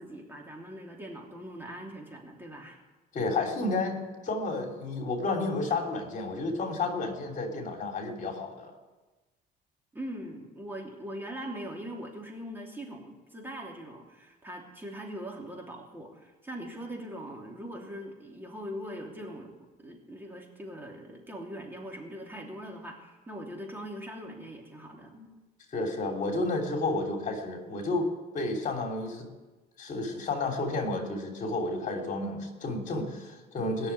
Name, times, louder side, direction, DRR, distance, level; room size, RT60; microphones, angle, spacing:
voice 1, 0.0-2.8 9.9-25.3, equal, 10° right, 0 dB, 3.0 m, -41 dB
voice 2, 3.1-8.7 25.7-28.1 28.3-29.3 29.8-33.9, left 2 dB, 50° left, 2 dB, 3.2 m, -31 dB
21.0 x 7.0 x 9.7 m, 1.2 s
cardioid pair, 110°, 17 cm